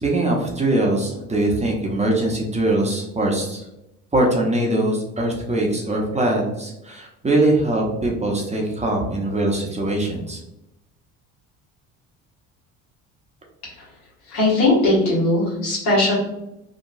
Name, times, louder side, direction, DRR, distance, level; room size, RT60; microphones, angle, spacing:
voice 1, 0.0-3.7 4.1-10.4, right 1 dB, 15° right, -1 dB, 0.7 m, -22 dB
voice 2, 14.3-16.2, left 2 dB, 80° left, -5 dB, 1.4 m, -19 dB
2.9 x 2.2 x 2.6 m, 0.89 s
hypercardioid pair, 65°, 38 cm